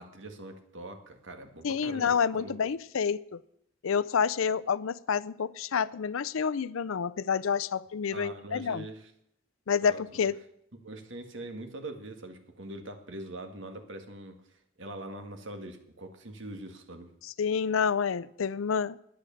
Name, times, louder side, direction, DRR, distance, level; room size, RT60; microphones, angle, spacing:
voice 1, 0.0-2.5 8.1-9.1 9.8-10.3 10.7-17.1, right 1 dB, 65° right, 1.9 m, -43 dB
voice 2, 1.6-3.4 3.8-8.8 9.7-10.4 17.4-19.0, left 6 dB, 85° left, 0.5 m, -28 dB
11.5 x 9.8 x 7.0 m
head